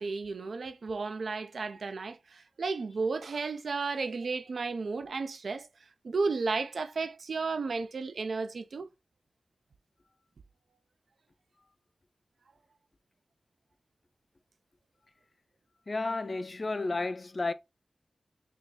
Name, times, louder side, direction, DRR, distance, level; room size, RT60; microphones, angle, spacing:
voice 1, 0.0-5.7 6.0-8.9, right 4 dB, 85° right, 0.3 m, -33 dB
voice 2, 15.9-17.5, left 3 dB, 45° left, 0.3 m, -32 dB
3.8 x 2.3 x 3.2 m
wide cardioid pair, 65°, 0 cm